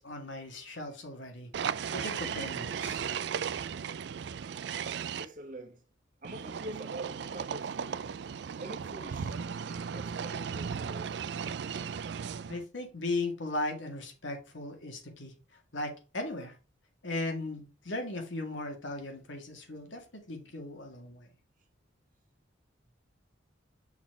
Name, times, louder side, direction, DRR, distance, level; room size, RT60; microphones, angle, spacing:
voice 1, 0.0-1.5 1.9-3.0 12.5-15.3 15.7-16.5 17.0-21.3, left 2 dB, 75° left, 1.8 m, -37 dB
sound 1, 1.5-5.2 6.2-12.6, right 7 dB, 60° right, 0.3 m, -36 dB
voice 2, 5.2-5.8 6.2-8.0 8.6-11.2, right 1 dB, 45° right, 1.2 m, -45 dB
5.9 x 4.1 x 4.7 m
head